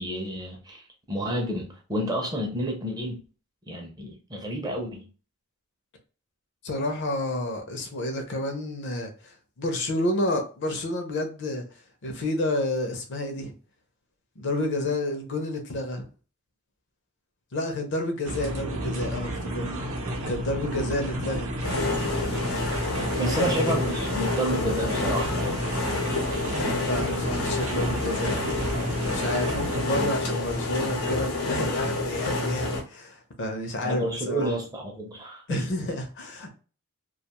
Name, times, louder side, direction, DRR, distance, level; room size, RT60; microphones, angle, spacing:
voice 1, 0.0-3.2 3.7-5.1 23.2-25.6 33.8-35.7, right 1 dB, 20° right, 0.5 m, -30 dB
voice 2, 6.6-11.6 12.0-13.5 14.4-16.0 17.5-19.7 20.3-21.8 23.2-23.5 26.8-28.5 29.0-34.5 35.5-36.5, left 1 dB, 55° left, 0.5 m, -30 dB
sound 1, 18.2-29.8, right 1 dB, 65° right, 0.6 m, -32 dB
sound 2, 21.6-32.8, left 2 dB, 90° left, 0.8 m, -28 dB
2.4 x 2.3 x 2.9 m
head